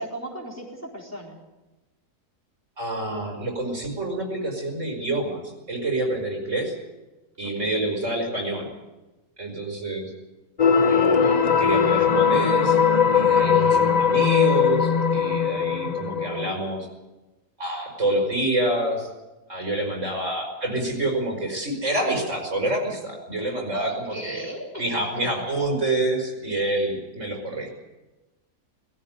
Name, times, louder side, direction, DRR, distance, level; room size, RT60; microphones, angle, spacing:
voice 1, 0.0-1.4 7.6-7.9 13.3-13.8 23.7-25.1, right 1 dB, 10° left, -3 dB, 4.2 m, -35 dB
voice 2, 2.8-6.8 7.4-8.7 9.4-10.1 10.8-12.8 13.1-16.9 17.6-19.1 19.5-24.5 24.8-27.7, right 1 dB, 50° right, 1 dB, 5.7 m, -27 dB
sound 1, 10.6-16.5, left 6 dB, 30° left, 1.0 m, -20 dB
21.5 x 15.5 x 9.5 m, 1.1 s
omnidirectional pair, 1.7 m